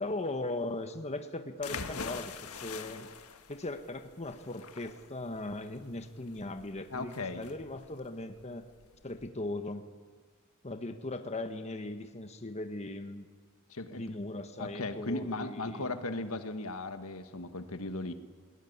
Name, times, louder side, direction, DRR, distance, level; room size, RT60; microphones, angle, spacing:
voice 1, 0.0-3.1 3.5-8.7 9.0-9.9 10.6-13.3 13.9-15.9, left 2 dB, 30° left, 7 dB, 1.2 m, -38 dB
sound 1, 1.6-9.3, left 5 dB, 85° left, 1.6 m, -44 dB
voice 2, 6.9-7.4 13.7-14.2 14.6-18.1, left 2 dB, 70° left, 8 dB, 1.6 m, -37 dB
21.0 x 20.0 x 9.5 m, 1.5 s
head